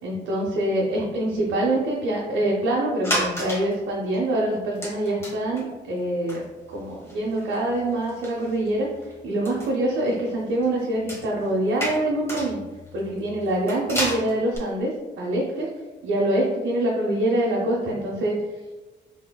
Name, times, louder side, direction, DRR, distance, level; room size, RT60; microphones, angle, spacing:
voice 1, 0.0-6.4 6.7-8.9 9.2-12.6 12.9-15.7 16.0-18.3, right 1 dB, 80° right, -4 dB, 0.8 m, -25 dB
sound 1, 3.0-3.8 4.1-4.2 4.8-5.6 6.0-6.1 6.3-9.1 9.4-14.6, equal, 15° left, 1.2 m, -32 dB
3.9 x 3.7 x 2.2 m, 1.3 s
cardioid pair, 90°, 20 cm